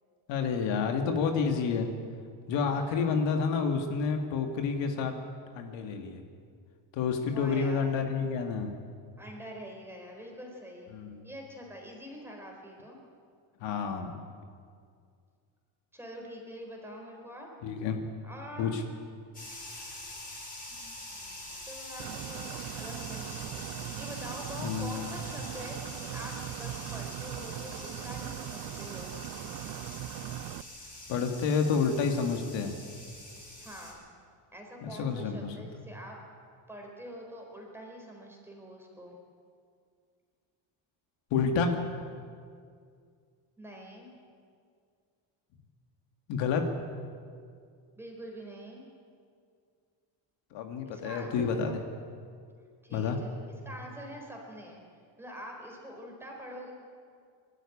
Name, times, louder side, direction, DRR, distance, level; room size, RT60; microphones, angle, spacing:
voice 1, 0.3-1.9 2.5-5.1 5.5-6.2 6.9-8.7 10.9-11.3 13.6-14.2 17.6-18.0 18.6-18.8 24.6-25.0 31.1-32.7 34.8-35.5 41.3-41.7 46.3-46.6 50.5-51.8 52.9-53.2, left 5 dB, 70° left, 5 dB, 2.1 m, -29 dB
voice 2, 2.7-3.2 7.3-7.9 9.2-10.9 11.2-13.0 15.9-17.5 18.2-19.0 20.3-21.1 21.6-29.1 33.4-34.0 34.5-36.2 36.7-39.2 43.6-44.1 48.0-48.8 50.9-51.9 52.8-53.4 53.6-54.8 55.2-56.7, equal, 5° right, 0 dB, 4.1 m, -45 dB
sound 1, 19.3-33.9, left 2 dB, 20° left, 5.0 m, -45 dB
sound 2, 22.0-30.6, right 13 dB, 50° right, 0.6 m, -40 dB
22.5 x 12.5 x 9.8 m, 2.2 s
cardioid pair, 155°, 46 cm